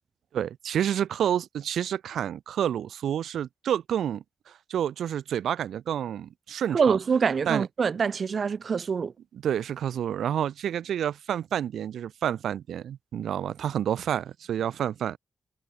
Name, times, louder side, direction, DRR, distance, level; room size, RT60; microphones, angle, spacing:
voice 1, 0.3-7.0 7.5-7.7 9.4-15.2, right 9 dB, 70° right, 2.1 m, -29 dB
voice 2, 6.7-9.1, right 6 dB, 40° right, 1.1 m, -25 dB
wide cardioid pair, 160°, 0 cm